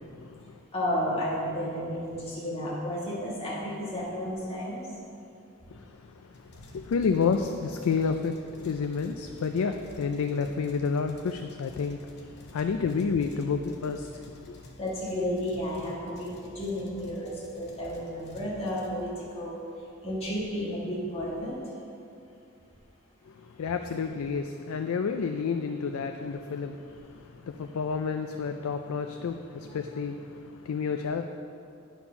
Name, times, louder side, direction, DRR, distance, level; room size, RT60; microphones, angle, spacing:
voice 1, 0.7-4.8 14.8-19.1 19.3-19.6 20.0-21.6, equal, 30° left, -7 dB, 1.6 m, -32 dB
sound 1, 6.3-19.5, left 1 dB, 50° left, 0.9 m, -51 dB
voice 2, 6.7-8.4 8.6-12.0 12.5-14.1 14.4-14.6 23.6-26.8 27.5-30.3 30.6-31.2, left 5 dB, 70° left, 6 dB, 0.4 m, -29 dB
10.5 x 4.4 x 5.7 m, 2.6 s
head